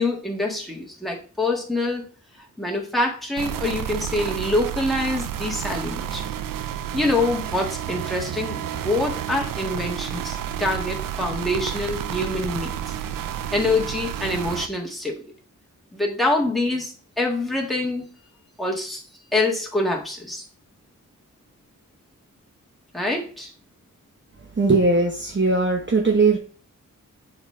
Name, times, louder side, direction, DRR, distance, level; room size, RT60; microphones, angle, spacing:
voice 1, 0.0-2.1 2.6-6.3 6.9-12.7 13.5-15.3 15.9-18.1 18.6-19.0 19.3-20.4 22.9-23.5, left 2 dB, ahead, 0 dB, 1.6 m, -25 dB
sound 1, 3.4-14.7, right 10 dB, 80° right, 0.5 m, -30 dB
voice 2, 24.6-26.4, right 3 dB, 35° right, 1 dB, 0.9 m, -19 dB
7.2 x 4.1 x 3.2 m, 0.39 s
wide cardioid pair, 95°, 33 cm